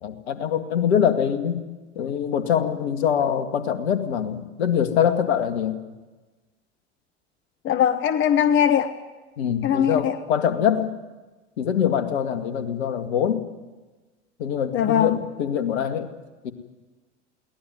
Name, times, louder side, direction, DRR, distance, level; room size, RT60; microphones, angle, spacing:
voice 1, 0.0-1.6 2.0-5.8 9.4-10.9 11.6-13.4 14.4-16.1 16.4-16.5, left 8 dB, 65° left, 2.3 m, -24 dB
voice 2, 7.6-9.0 9.6-10.2 14.7-15.2, left 9 dB, 35° left, 1.1 m, -20 dB
23.0 x 18.0 x 9.4 m
figure-of-eight pair, 80°, 35 cm